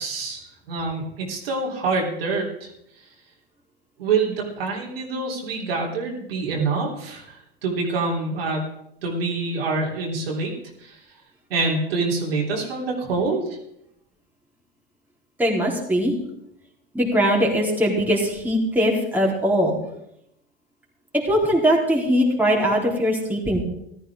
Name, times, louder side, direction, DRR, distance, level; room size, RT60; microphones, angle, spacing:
voice 1, 0.0-2.7 4.0-8.6 9.0-10.5 10.8-11.0 11.5-13.6, right 3 dB, 85° right, -2 dB, 3.5 m, -26 dB
voice 2, 15.4-16.1 16.9-19.7 21.2-23.6, equal, 5° right, -2 dB, 3.6 m, -21 dB
14.5 x 13.0 x 3.6 m, 0.76 s
hypercardioid pair, 95°, 29 cm